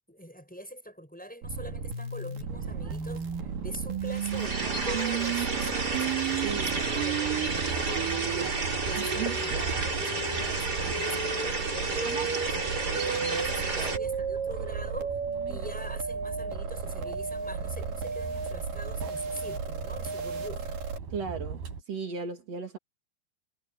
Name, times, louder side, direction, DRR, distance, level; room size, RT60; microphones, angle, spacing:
voice 1, 0.1-3.3 3.6-6.1 6.4-12.6 12.9-15.2 15.5-20.8, equal, ahead, 5.9 m, -43 dB
sound 1, 1.4-21.0, right 6 dB, 65° right, 4.4 m, -34 dB
sound 2, 2.5-21.8, right 6 dB, 85° right, 6.1 m, -40 dB
sound 3, 4.1-14.0, right 3 dB, 25° right, 3.9 m, -32 dB
voice 2, 6.4-6.8 9.0-9.4 13.2-14.0 21.1-22.8, right 6 dB, 50° right, 3.0 m, -37 dB
omnidirectional pair, 4.2 m